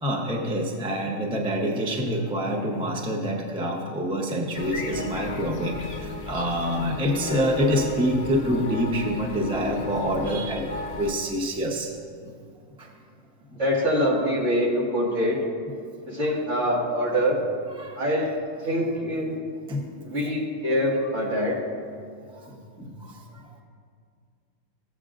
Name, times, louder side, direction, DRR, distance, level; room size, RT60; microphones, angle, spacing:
voice 1, 0.0-11.9 12.8-12.9 17.8-17.9 19.7-19.8 22.8-23.1, equal, 5° right, -1 dB, 0.6 m, -26 dB
sound 1, 4.5-11.1, left 4 dB, 35° left, 0.8 m, -34 dB
voice 2, 13.6-15.4 16.1-17.4 18.0-18.3 18.6-19.3 20.0-21.6, equal, 55° right, -5 dB, 2.2 m, -24 dB
15.5 x 8.2 x 2.5 m, 2.2 s
omnidirectional pair, 1.5 m